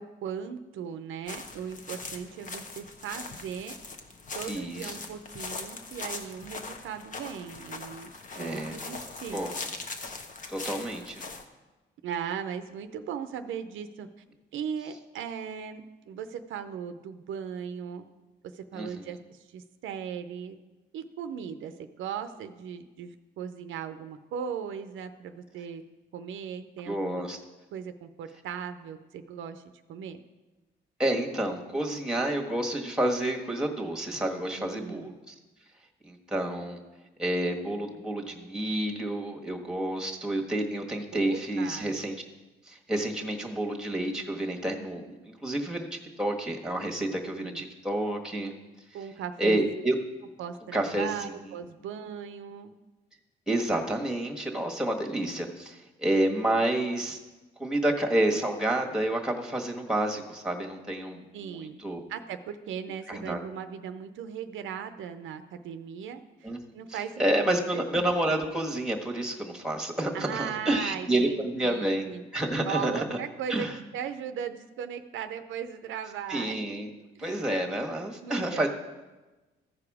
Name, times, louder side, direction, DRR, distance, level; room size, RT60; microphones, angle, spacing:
voice 1, 0.0-3.8 4.3-8.1 8.4-9.4 12.0-14.1 14.5-18.0 18.5-20.6 20.9-25.8 26.1-27.2 27.7-29.6 29.9-30.2 34.6-35.1 41.1-42.0 47.3-47.7 48.9-49.6 50.4-52.7 61.3-61.8 62.1-67.3 67.7-67.9 70.1-72.3 72.7-73.7 73.9-76.6 77.2-77.5 78.2-78.7, right 8 dB, 80° right, 9 dB, 0.6 m, -38 dB
sound 1, 1.3-11.4, left 3 dB, 40° left, 1.0 m, -41 dB
voice 2, 4.5-5.0 8.3-8.9 9.3-9.5 10.5-11.2 18.7-19.1 26.9-27.4 31.0-35.3 36.0-36.8 37.2-42.1 42.7-48.5 49.4-49.9 50.7-51.3 53.5-57.2 57.6-62.0 63.1-63.4 66.4-66.6 66.9-72.0 72.3-73.2 73.5-73.7 76.3-76.9 77.2-78.7, right 1 dB, 5° right, 3 dB, 1.4 m, -29 dB
14.5 x 4.9 x 4.8 m, 1.2 s
cardioid pair, 90°, 20 cm